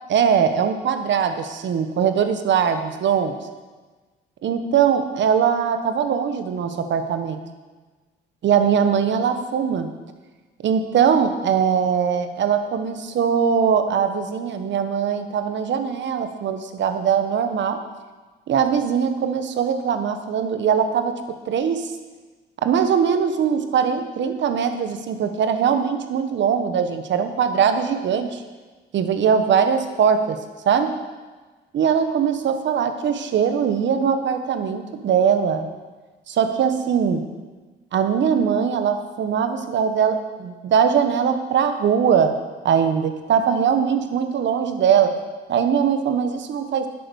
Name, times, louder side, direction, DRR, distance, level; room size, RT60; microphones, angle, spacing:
voice 1, 0.1-3.4 4.4-7.4 8.4-9.9 10.6-17.8 18.5-22.0 22.6-28.4 28.9-30.4 30.6-31.0 31.7-35.7 36.3-37.3 37.9-45.2 45.5-46.9, right 7 dB, 65° right, 8 dB, 1.2 m, -21 dB
10.5 x 8.6 x 6.4 m, 1.3 s
cardioid pair, 90°, 20 cm